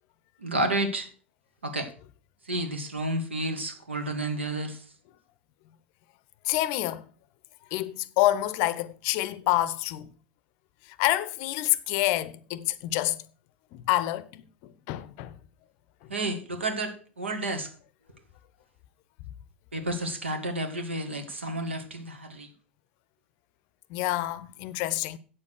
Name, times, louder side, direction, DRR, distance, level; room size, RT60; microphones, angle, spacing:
voice 1, 0.4-1.1 1.6-1.9 2.5-4.8 16.1-17.7 19.7-22.5, right 1 dB, 80° right, 1.9 m, -31 dB
voice 2, 6.4-7.0 7.7-10.1 11.0-13.2 13.7-14.4 14.9-15.3 23.9-25.2, left 15 dB, 45° left, 0.6 m, -27 dB
8.6 x 7.3 x 6.3 m
figure-of-eight pair, 90°, 6 cm